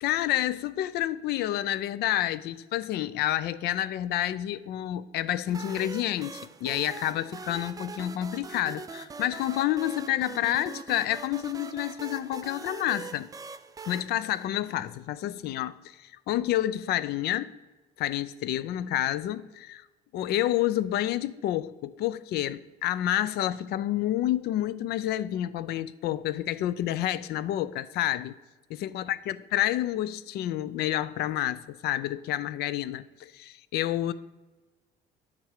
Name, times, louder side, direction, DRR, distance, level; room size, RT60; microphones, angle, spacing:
voice 1, 0.0-13.3 13.9-17.6 18.0-19.8 20.1-28.3 28.7-34.1, left 13 dB, 70° left, 0.4 m, -29 dB
sound 1, 5.5-15.1, right 5 dB, 20° right, 0.4 m, -42 dB
9.3 x 3.7 x 6.5 m
cardioid pair, 110°, 17 cm